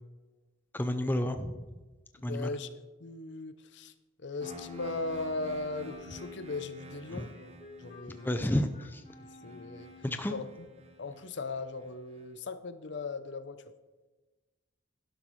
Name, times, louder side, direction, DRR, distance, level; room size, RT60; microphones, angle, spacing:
voice 1, 0.7-1.5 2.2-2.5 7.1-7.2 8.1-9.0 10.0-10.3, left 1 dB, 10° left, 7 dB, 0.4 m, -31 dB
voice 2, 2.2-3.9 4.2-7.3 7.8-8.5 9.2-9.9 10.3-10.7 11.0-13.6, left 3 dB, 60° left, 11 dB, 0.6 m, -38 dB
Wind instrument woodwind instrument, 4.4-10.4, left 2 dB, 40° left, 1.3 m, -54 dB
sound 1, 4.4-12.2, left 1 dB, 30° right, 0.8 m, -50 dB
11.5 x 11.5 x 3.2 m, 1.2 s
head